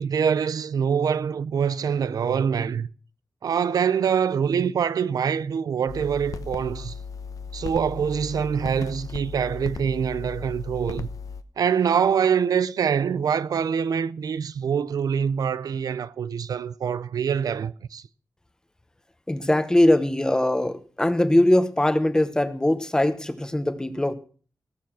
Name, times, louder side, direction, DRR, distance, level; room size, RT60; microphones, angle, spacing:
voice 1, 0.0-2.9 3.4-6.9 7.5-11.1 11.6-18.0, right 7 dB, 85° right, 0.5 m, -24 dB
sound 1, 5.9-11.4, left 5 dB, 70° left, 0.9 m, -36 dB
voice 2, 19.3-24.1, left 1 dB, 10° left, 1.0 m, -21 dB
18.0 x 7.1 x 6.0 m
wide cardioid pair, 170°, 6 cm